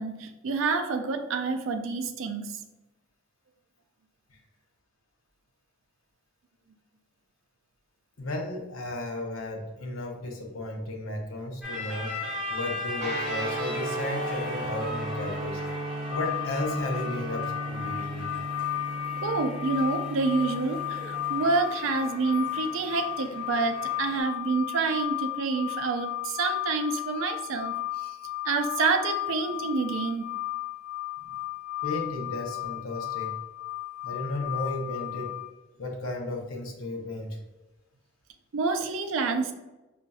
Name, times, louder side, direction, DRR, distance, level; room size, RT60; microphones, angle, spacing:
voice 1, 0.0-2.6 19.2-27.8 28.0-28.1 28.4-30.3 38.5-39.5, right 4 dB, 70° right, 7 dB, 0.4 m, -28 dB
voice 2, 8.2-12.1 12.5-15.6 16.1-18.3 31.2-31.3 31.8-33.4 34.0-35.3 35.8-37.4, left 2 dB, 75° left, 1 dB, 0.7 m, -34 dB
sound 1, 11.6-24.2, left 1 dB, 5° right, 0.9 m, -39 dB
Guitar, 13.0-21.5, right 1 dB, 35° right, 1.5 m, -36 dB
sound 2, 16.1-35.5, left 17 dB, 45° left, 0.4 m, -34 dB
5.2 x 2.5 x 2.3 m, 1.1 s
head